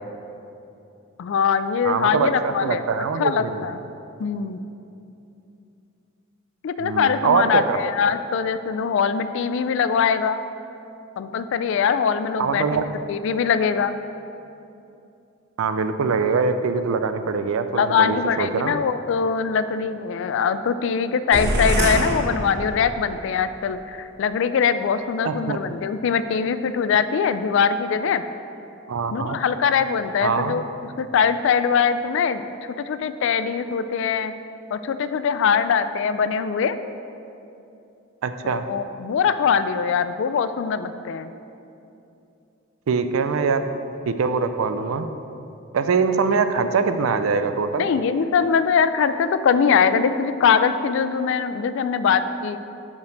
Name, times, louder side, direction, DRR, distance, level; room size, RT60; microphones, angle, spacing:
voice 1, 1.2-2.8 3.2-3.8 4.2-4.6 6.6-10.4 11.2-13.9 17.7-28.2 29.1-30.7 31.0-32.4 32.8-34.3 34.7-36.8 38.4-41.3 47.8-52.6, left 6 dB, 65° left, 12 dB, 0.3 m, -22 dB
voice 2, 1.8-3.7 6.8-7.8 12.4-12.9 15.6-18.8 25.2-25.6 28.9-29.4 30.2-30.5 38.2-38.7 42.9-43.7 44.1-45.0 45.7-47.9, right 5 dB, 85° right, 9 dB, 0.4 m, -23 dB
sound 1, 21.3-23.2, right 1 dB, 55° right, 0.7 m, -24 dB
5.2 x 5.1 x 6.3 m, 2.8 s
head